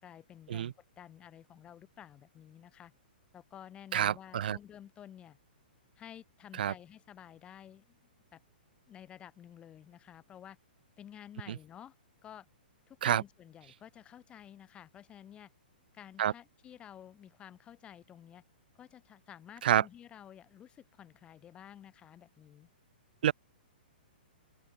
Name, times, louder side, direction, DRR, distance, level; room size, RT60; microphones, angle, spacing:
voice 1, 0.0-2.9 3.3-5.4 6.0-7.9 8.3-8.4 8.9-10.6 11.0-11.9 12.2-12.5 12.9-15.5 15.9-18.4 18.8-22.7, left 10 dB, 20° left, 2.6 m, -52 dB
voice 2, 3.9-4.6 6.6-6.7 11.5-11.6 13.0-13.2 16.2-16.3 19.6-19.8 23.2-23.3, right 10 dB, 65° right, 0.7 m, -28 dB
open air
hypercardioid pair, 140°, 5 cm